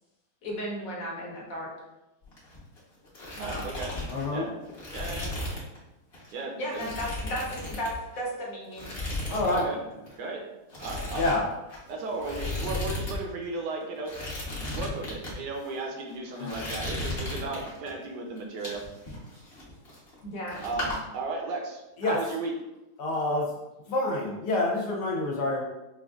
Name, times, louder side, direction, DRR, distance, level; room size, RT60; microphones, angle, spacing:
voice 1, 0.4-1.7 3.4-3.7 6.6-8.9 20.2-20.7, equal, 60° left, -3 dB, 1.3 m, -35 dB
sound 1, 2.2-2.8 3.0-5.8 6.1-6.3 6.7-8.3 8.7-9.7 9.9-10.1 10.7-13.2 13.4-13.5 14.0-15.3 15.9-16.1 16.5-17.9 18.4-20.2 20.5-21.0, left 2 dB, 40° left, 1.1 m, -35 dB
voice 2, 3.4-3.9 4.3-4.5 4.9-5.3 6.3-6.9 9.5-9.8 10.2-10.4 10.8-11.4 11.9-14.1 14.7-18.8 20.6-22.5, right 3 dB, 85° right, 1 dB, 1.3 m, -35 dB
voice 3, 4.1-4.5 9.3-9.7 11.1-11.4 16.4-16.6 22.0-22.2 23.0-23.5 23.9-25.6, left 2 dB, 80° left, -1 dB, 1.4 m, -27 dB
5.0 x 2.5 x 2.4 m, 0.99 s
omnidirectional pair, 1.8 m